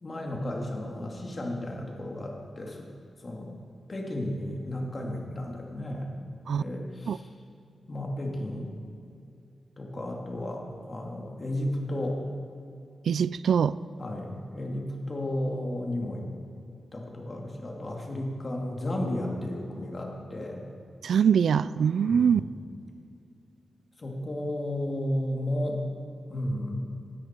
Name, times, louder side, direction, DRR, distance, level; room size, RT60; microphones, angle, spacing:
voice 1, 0.0-2.9 3.2-3.5 3.9-6.1 6.4-7.2 7.9-8.7 9.8-12.2 14.0-16.3 16.9-20.6 22.1-22.5 24.0-25.8 26.3-27.0, left 1 dB, 35° left, 0 dB, 2.5 m, -33 dB
voice 2, 13.1-13.7 21.0-22.4, right 7 dB, 80° right, 17 dB, 0.3 m, -23 dB
19.5 x 13.0 x 4.5 m, 2.5 s
wide cardioid pair, 120°, 0 cm